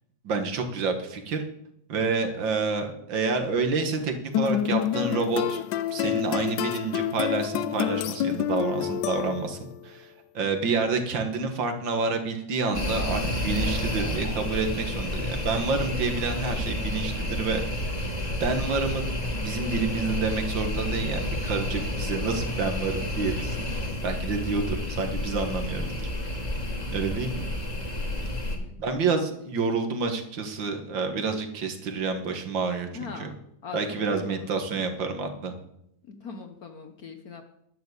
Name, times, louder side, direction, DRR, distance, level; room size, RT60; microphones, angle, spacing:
voice 1, 0.2-1.4 1.9-5.6 5.9-9.6 9.8-10.1 10.3-17.6 18.3-19.0 19.3-23.7 24.0-26.4 26.9-27.4 28.8-33.3 33.7-35.5, right 4 dB, 75° right, 5 dB, 2.2 m, -28 dB
sound 1, 4.3-9.7, left 11 dB, 80° left, 1.3 m, -28 dB
sound 2, 12.7-28.6, left 1 dB, 20° left, 1.8 m, -30 dB
voice 2, 28.2-28.8 32.9-33.3 33.6-34.5 36.0-37.4, left 5 dB, 55° left, 6 dB, 1.4 m, -42 dB
11.5 x 7.0 x 8.1 m, 0.76 s
omnidirectional pair, 2.0 m